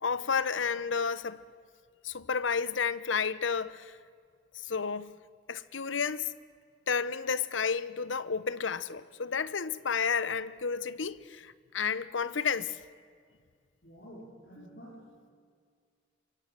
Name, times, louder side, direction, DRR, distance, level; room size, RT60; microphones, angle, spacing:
voice 1, 0.0-1.4 2.0-4.0 4.5-5.2 5.5-6.3 6.9-12.8, left 6 dB, 90° left, 0.9 m, -31 dB
voice 2, 13.8-15.3, equal, 55° left, 4.8 m, -50 dB
24.0 x 16.0 x 9.1 m
head